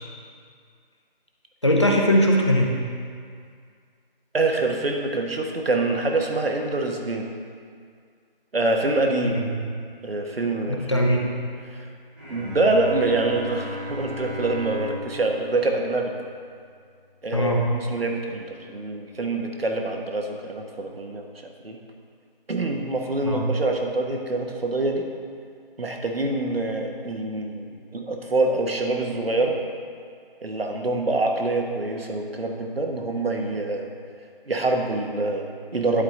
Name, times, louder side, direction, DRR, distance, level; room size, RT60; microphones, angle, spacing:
voice 1, 1.6-2.7 9.2-9.7 10.9-11.2 17.3-17.6 23.2-23.4, equal, 30° left, 0 dB, 0.7 m, -20 dB
voice 2, 4.3-7.3 8.5-9.4 10.0-11.1 11.7-11.8 12.3-16.1 17.2-21.3 21.6-21.8 22.5-25.0 25.8-29.6 30.4-33.9 34.5-36.0, right 2 dB, 85° right, 2 dB, 1.2 m, -25 dB
Bowed string instrument, 12.1-17.4, left 1 dB, 15° right, 0.9 m, -36 dB
11.0 x 4.8 x 3.8 m, 2.2 s
figure-of-eight pair, 170°, 29 cm